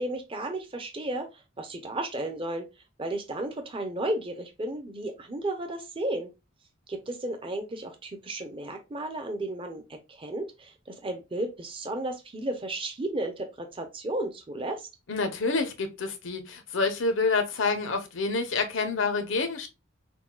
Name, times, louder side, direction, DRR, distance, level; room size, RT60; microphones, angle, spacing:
voice 1, 0.0-2.7 3.0-6.3 6.9-14.9, right 1 dB, 25° right, 0.6 m, -33 dB
voice 2, 15.1-19.7, left 3 dB, 65° left, 0.8 m, -28 dB
6.0 x 2.3 x 2.3 m
head